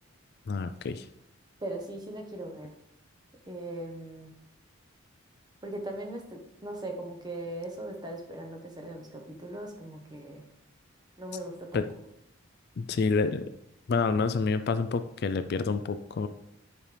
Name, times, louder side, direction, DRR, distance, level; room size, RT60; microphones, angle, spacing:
voice 1, 0.5-1.1 11.7-11.8 12.8-13.4 13.9-16.3, left 4 dB, 50° left, 10 dB, 0.3 m, -28 dB
voice 2, 1.6-2.7 3.5-4.3 5.6-10.4 11.2-11.9, right 1 dB, 20° right, 3 dB, 1.0 m, -39 dB
9.9 x 5.3 x 3.3 m, 0.79 s
head